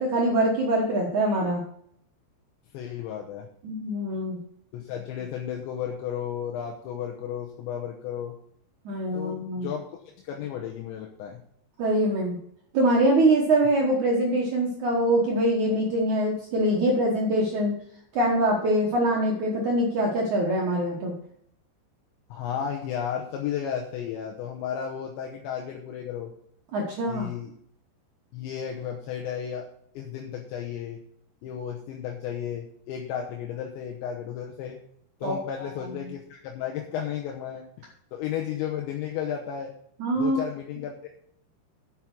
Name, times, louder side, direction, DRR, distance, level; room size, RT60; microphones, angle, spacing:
voice 1, 0.0-1.6 3.6-4.4 8.9-9.7 11.8-12.4 12.7-17.7 18.1-21.1 26.7-27.3 35.2-35.4 36.0-36.1 40.0-40.4, right 1 dB, 75° right, -1 dB, 1.7 m, -24 dB
voice 2, 2.7-3.5 4.7-8.3 9.1-9.8 10.2-11.4 22.3-26.3 27.1-27.5 28.3-29.6 29.9-31.0 31.4-34.8 35.2-37.6 38.1-39.7 40.2-41.1, left 9 dB, 75° left, 0 dB, 3.2 m, -33 dB
8.1 x 7.6 x 6.0 m, 0.68 s
omnidirectional pair, 5.4 m